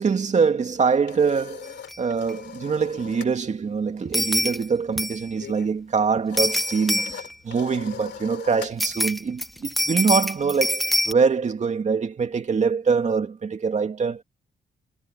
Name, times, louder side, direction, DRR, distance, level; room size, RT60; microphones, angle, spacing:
voice 1, 0.0-14.2, right 5 dB, 40° right, 2.5 m, -24 dB
sound 1, 0.7-3.4 3.7-10.9, left 8 dB, 85° left, 3.4 m, -42 dB
sound 2, 1.9-2.0 2.3-2.4 4.1-4.6 5.0-5.3 6.4-7.4 8.8-11.1, equal, ahead, 1.2 m, -25 dB
wide cardioid pair, 145°, 18 cm